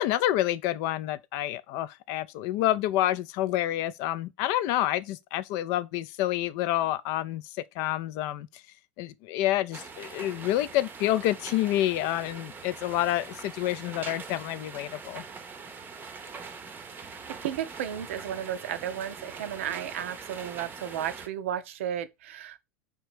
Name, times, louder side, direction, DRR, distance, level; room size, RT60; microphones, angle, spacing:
voice 1, 0.0-8.5 9.0-15.2, left 14 dB, 50° left, 0.4 m, -28 dB
sound 1, 9.7-21.3, right 5 dB, 25° right, 0.7 m, -43 dB
voice 2, 17.0-22.6, right 10 dB, 65° right, 0.5 m, -34 dB
3.4 x 3.0 x 4.7 m
figure-of-eight pair, 85°, 7 cm